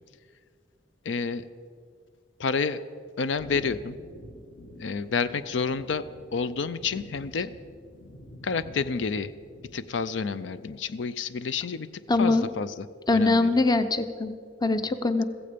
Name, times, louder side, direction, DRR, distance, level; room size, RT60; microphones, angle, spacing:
voice 1, 1.0-1.4 2.4-2.8 3.2-4.0 4.8-6.1 6.3-7.5 8.4-9.3 9.7-11.9 12.2-12.9 13.1-13.5, left 5 dB, 80° left, 15 dB, 0.5 m, -29 dB
sound 1, 3.3-10.1, left 1 dB, 60° left, 2.0 m, -47 dB
voice 2, 12.1-12.5 13.1-14.4 14.6-15.2, left 3 dB, 20° left, 11 dB, 0.6 m, -23 dB
15.5 x 15.5 x 5.1 m, 2.1 s
head